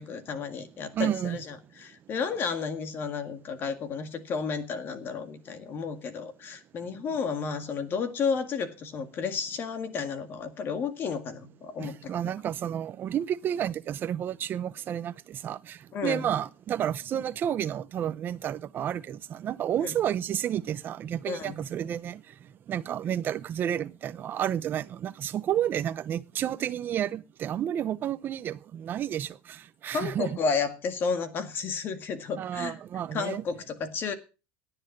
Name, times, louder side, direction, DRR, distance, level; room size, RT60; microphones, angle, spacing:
voice 1, 0.0-12.1 15.9-16.3 19.8-19.9 21.3-21.6 29.9-32.8 33.1-34.1, left 5 dB, 30° left, 1.8 m, -32 dB
voice 2, 0.9-1.4 11.8-22.2 22.7-30.4 32.4-33.4, right 10 dB, 25° right, 0.8 m, -31 dB
18.0 x 10.0 x 5.4 m
cardioid pair, 175°, 8 cm